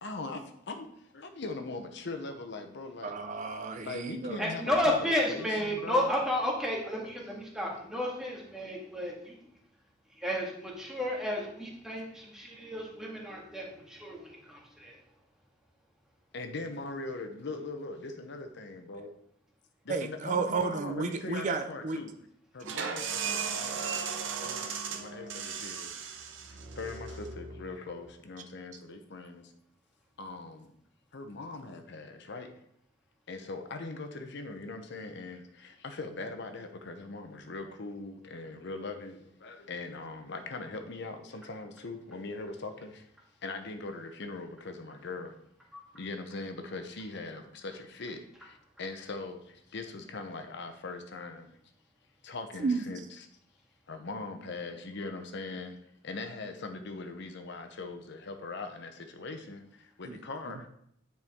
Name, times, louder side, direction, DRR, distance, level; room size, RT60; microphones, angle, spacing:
voice 1, 0.0-3.1 3.8-6.1 16.3-19.1 19.9-22.1 22.5-24.1 24.3-29.5 30.2-30.7 31.1-32.5 33.3-43.1 43.4-45.4 45.9-51.5 52.2-53.0 53.9-55.8 56.0-60.7, left 3 dB, 60° left, 6 dB, 0.8 m, -41 dB
voice 2, 3.0-4.4 19.9-22.0 52.6-52.8 60.0-60.2 60.5-60.7, right 4 dB, 40° right, 7 dB, 0.4 m, -32 dB
voice 3, 4.4-9.4 10.2-15.0 45.7-45.8, left 1 dB, 5° right, -3 dB, 1.7 m, -32 dB
sound 1, 22.6-28.1, right 6 dB, 70° right, 0.8 m, -36 dB
9.4 x 4.5 x 3.6 m, 0.71 s
head